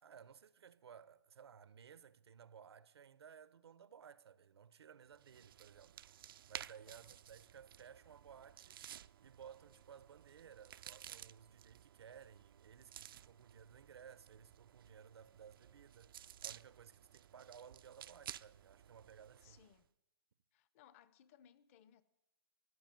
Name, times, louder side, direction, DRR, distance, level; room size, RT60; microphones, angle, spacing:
voice 1, 0.0-8.8 9.2-19.6, right 7 dB, 80° right, 0.8 m, -58 dB
sound 1, 5.1-19.8, right 10 dB, 60° right, 0.4 m, -55 dB
voice 2, 19.4-19.9 20.5-22.0, left 10 dB, 35° left, 0.8 m, -65 dB
16.0 x 9.0 x 9.1 m
hypercardioid pair, 155°, 13 cm